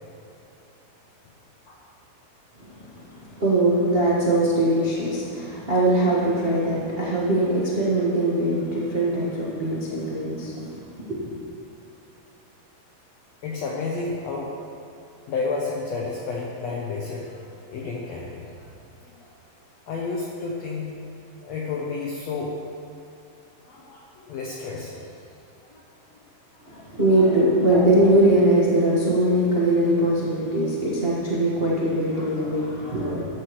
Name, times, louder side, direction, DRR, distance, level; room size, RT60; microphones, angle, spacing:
voice 1, 2.6-11.3 26.6-33.2, right 1 dB, 85° right, -7 dB, 0.5 m, -22 dB
voice 2, 13.4-14.5 15.3-18.7 19.2-19.3 19.9-20.9 21.4-22.6 23.7-25.2 25.7-25.8 26.6-26.9, left 4 dB, 80° left, -2 dB, 1.5 m, -31 dB
14.0 x 11.0 x 3.2 m, 2.8 s
omnidirectional pair, 4.1 m